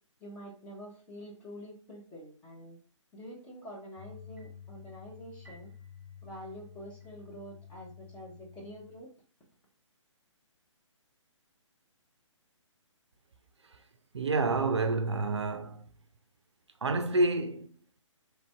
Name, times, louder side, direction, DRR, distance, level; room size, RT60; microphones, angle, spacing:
voice 1, 0.2-2.8 3.1-5.7 6.2-9.1, equal, 10° left, 0.7 m, -47 dB
sound 1, 4.0-9.0, left 7 dB, 35° right, 1.0 m, -51 dB
voice 2, 14.1-15.8 16.8-18.0, right 3 dB, 60° right, 0.4 m, -29 dB
3.1 x 2.5 x 3.3 m
figure-of-eight pair, 135°, 16 cm